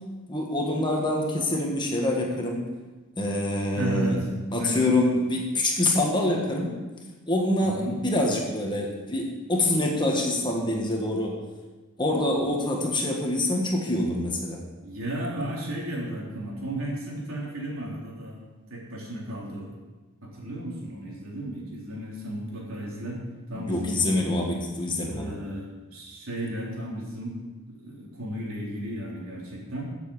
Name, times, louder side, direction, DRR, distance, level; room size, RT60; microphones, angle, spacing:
voice 1, 0.3-2.6 3.2-4.2 4.5-6.8 7.3-11.4 12.0-14.6 23.5-25.3, left 1 dB, 20° left, 0 dB, 1.6 m, -25 dB
voice 2, 3.7-4.2 4.5-4.8 7.6-8.0 14.8-18.4 18.7-19.7 20.2-23.2 23.5-24.2 25.0-27.4 27.7-29.9, right 1 dB, 70° right, -4 dB, 3.6 m, -34 dB
15.0 x 7.4 x 4.9 m, 1.2 s
head